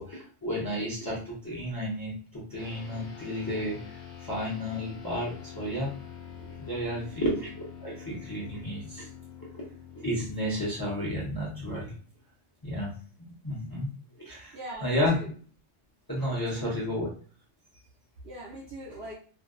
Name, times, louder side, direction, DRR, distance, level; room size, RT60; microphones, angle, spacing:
voice 1, 0.0-3.8 4.3-5.9 6.6-9.1 9.5-9.6 9.9-11.9 12.6-12.9 13.4-13.9 14.3-15.2 16.1-17.1, left 1 dB, 25° left, -5 dB, 0.5 m, -32 dB
sound 1, 2.6-12.2, left 7 dB, 45° left, 0.9 m, -46 dB
voice 2, 6.9-7.3 14.5-15.3 16.3-17.1 18.2-19.1, right 2 dB, 65° right, -3 dB, 0.7 m, -42 dB
2.5 x 2.2 x 2.3 m, 0.43 s
omnidirectional pair, 1.2 m